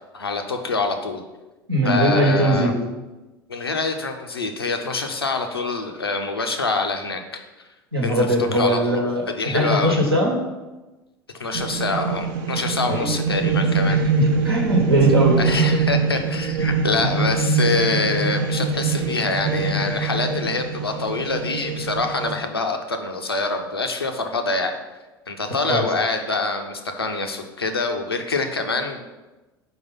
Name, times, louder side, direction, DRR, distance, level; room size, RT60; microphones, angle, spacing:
voice 1, 0.1-1.2 1.8-2.7 3.5-7.7 8.0-9.0 9.3-10.0 11.4-14.0 15.4-24.7 25.3-29.0, left 3 dB, 85° left, 5 dB, 0.6 m, -25 dB
voice 2, 1.7-2.7 7.9-10.3 12.8-13.1 13.9-15.4 16.9-17.1 25.7-25.8, right 1 dB, 85° right, -1 dB, 1.2 m, -20 dB
sound 1, 11.5-22.3, right 4 dB, 60° right, 0.7 m, -23 dB
4.9 x 4.0 x 5.4 m, 1.1 s
figure-of-eight pair, 70°, 12 cm